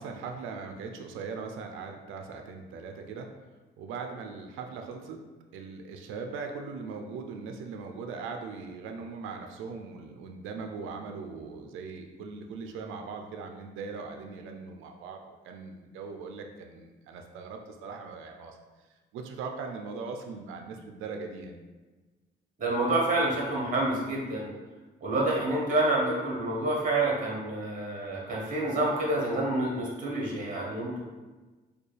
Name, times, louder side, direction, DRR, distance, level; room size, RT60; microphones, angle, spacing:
voice 1, 0.0-3.3 3.8-5.2 5.5-18.6 19.1-21.5, right 4 dB, 90° right, 4 dB, 0.4 m, -40 dB
voice 2, 22.6-24.5 25.0-31.0, right 2 dB, 40° right, -2 dB, 1.2 m, -28 dB
4.3 x 2.3 x 3.2 m, 1.2 s
cardioid pair, 90°, 20 cm